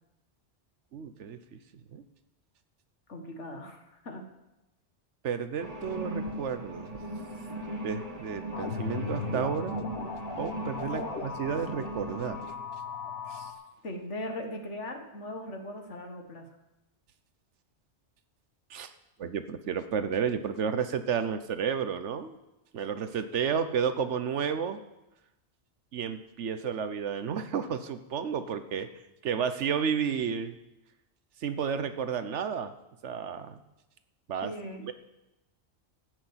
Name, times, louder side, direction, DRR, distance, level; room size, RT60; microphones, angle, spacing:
voice 1, 0.9-1.6 1.9-2.0 5.2-7.0 7.8-9.8 10.4-12.4 13.3-13.5 18.7-18.9 19.2-22.4 22.7-24.8 25.9-28.9 29.2-30.6 31.4-32.7 33.0-33.6 34.3-34.5 34.8-34.9, right 7 dB, 80° right, 10 dB, 1.2 m, -32 dB
voice 2, 3.1-4.3 10.9-11.1 13.8-16.4 34.4-34.8, left 1 dB, 85° left, 4 dB, 2.0 m, -39 dB
sound 1, 5.6-12.5, right 1 dB, 35° right, 1.6 m, -39 dB
sound 2, 8.5-13.5, left 5 dB, 55° left, 1.4 m, -38 dB
15.0 x 6.5 x 8.0 m, 0.97 s
omnidirectional pair, 1.2 m